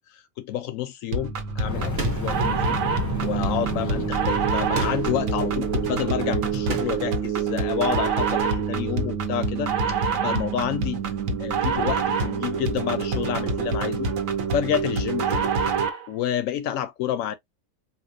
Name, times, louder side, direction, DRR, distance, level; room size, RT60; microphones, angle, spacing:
voice 1, 0.1-2.8 3.2-11.0 11.4-14.1 14.5-15.5 16.1-17.3, left 10 dB, 85° left, 1.0 m, -29 dB
sound 1, 1.1-16.1, right 5 dB, 85° right, 1.2 m, -26 dB
Fire, 1.5-6.8, left 1 dB, 15° left, 0.7 m, -32 dB
sound 2, 2.0-2.5 4.7-5.3 6.7-7.2, right 4 dB, 50° right, 1.4 m, -32 dB
4.3 x 2.1 x 2.7 m
omnidirectional pair, 1.3 m